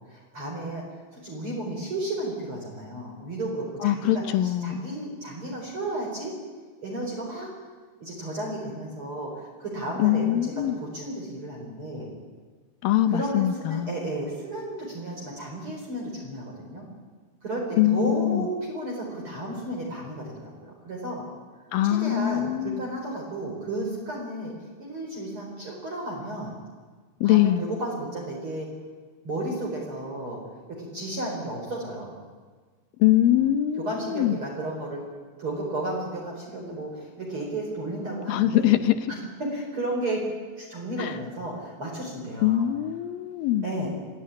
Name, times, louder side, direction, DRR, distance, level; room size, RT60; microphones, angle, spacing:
voice 1, 0.1-0.9 1.1-6.3 6.8-7.5 8.0-12.1 13.1-16.8 17.4-21.2 21.8-26.5 27.2-28.7 29.2-30.4 30.7-32.2 33.8-35.0 35.4-38.8 39.4-40.2 40.6-42.7 43.6-43.9, right 1 dB, 30° right, -3 dB, 5.1 m, -33 dB
voice 2, 3.8-4.8 10.0-10.8 12.8-13.9 17.8-18.5 21.7-22.8 27.2-27.6 33.0-34.4 38.3-39.0 41.0-41.2 42.4-43.7, left 13 dB, 75° left, 11 dB, 2.3 m, -23 dB
25.0 x 15.5 x 9.8 m, 1.5 s
omnidirectional pair, 4.7 m